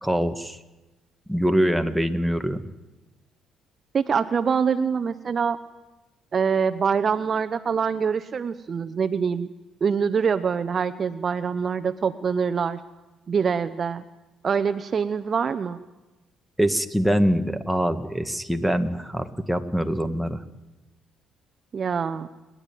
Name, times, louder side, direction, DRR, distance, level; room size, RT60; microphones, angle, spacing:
voice 1, 0.0-0.6 1.3-2.6 16.6-20.4, equal, ahead, 6 dB, 1.8 m, -24 dB
voice 2, 3.9-5.6 6.3-9.5 9.8-12.8 13.3-14.0 14.4-15.8 21.7-22.3, right 6 dB, 45° right, 10 dB, 0.9 m, -24 dB
30.0 x 11.0 x 9.4 m, 1.1 s
cardioid pair, 80°, 0 cm